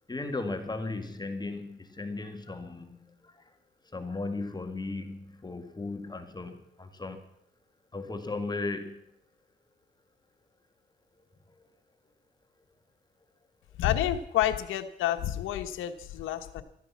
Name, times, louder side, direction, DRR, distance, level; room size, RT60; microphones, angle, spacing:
voice 1, 0.1-3.5 3.8-7.2 7.9-9.0 11.6-11.7, left 3 dB, 20° left, 6 dB, 1.9 m, -36 dB
voice 2, 13.8-16.6, left 12 dB, 85° left, 7 dB, 1.3 m, -29 dB
14.0 x 12.5 x 7.2 m, 0.78 s
cardioid pair, 90°, 20 cm